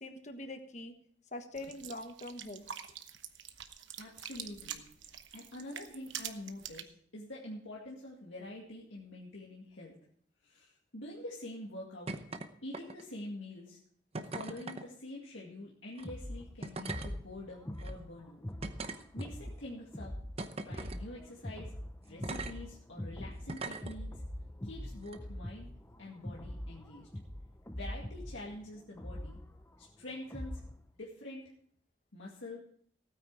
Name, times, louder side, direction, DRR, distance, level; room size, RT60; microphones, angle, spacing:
voice 1, 0.0-0.9 1.3-2.6, left 1 dB, 40° left, 6 dB, 1.4 m, -43 dB
sound 1, 1.5-6.8, right 9 dB, 80° right, 1.0 m, -45 dB
voice 2, 4.0-10.0 10.4-12.1 12.6-13.8 14.2-18.4 19.1-20.1 20.6-21.7 22.0-24.2 24.6-25.7 26.0-27.1 27.7-29.4 29.8-30.6 31.0-31.4 32.1-32.6, left 1 dB, 85° left, -4 dB, 2.2 m, -46 dB
sound 2, 12.1-12.5 12.7-13.2 14.1-14.8 15.9-16.1 16.6-17.1 17.8-17.9 18.6-19.5 20.4-21.0 22.2-22.5 23.5-23.9 25.0-25.2, right 3 dB, 30° right, 0.8 m, -40 dB
sound 3, 16.0-30.8, left 1 dB, 15° left, 0.6 m, -43 dB
16.5 x 9.3 x 4.9 m, 0.62 s
head